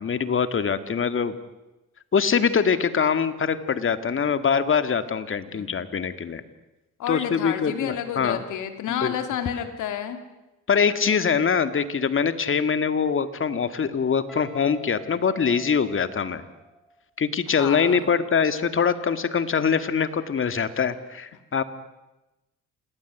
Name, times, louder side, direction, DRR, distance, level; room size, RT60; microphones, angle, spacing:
voice 1, 0.0-1.4 2.1-6.4 7.1-8.4 9.0-9.2 10.7-16.4 17.2-21.6, left 6 dB, 45° left, 11 dB, 2.1 m, -23 dB
voice 2, 7.0-10.2 17.5-18.0, left 9 dB, 85° left, 7 dB, 3.1 m, -30 dB
Guitar, 14.3-17.1, right 3 dB, ahead, 2.4 m, -46 dB
28.0 x 19.0 x 9.4 m, 1.0 s
cardioid pair, 90°, 30 cm